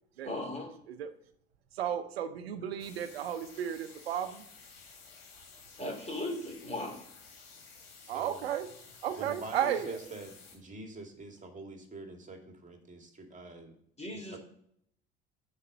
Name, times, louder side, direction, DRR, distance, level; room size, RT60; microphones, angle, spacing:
voice 1, 0.2-0.8 5.8-7.1 14.0-14.4, left 1 dB, 20° left, 3 dB, 3.2 m, -37 dB
voice 2, 1.7-4.4 8.1-8.7 9.0-10.0, right 9 dB, 85° right, 10 dB, 0.7 m, -33 dB
sound 1, 2.8-10.6, left 5 dB, 75° left, 3.0 m, -54 dB
voice 3, 8.0-8.4 9.2-13.8 14.3-14.4, right 3 dB, 25° right, 4 dB, 2.2 m, -45 dB
8.5 x 5.1 x 5.5 m, 0.69 s
hypercardioid pair, 60°, 30 cm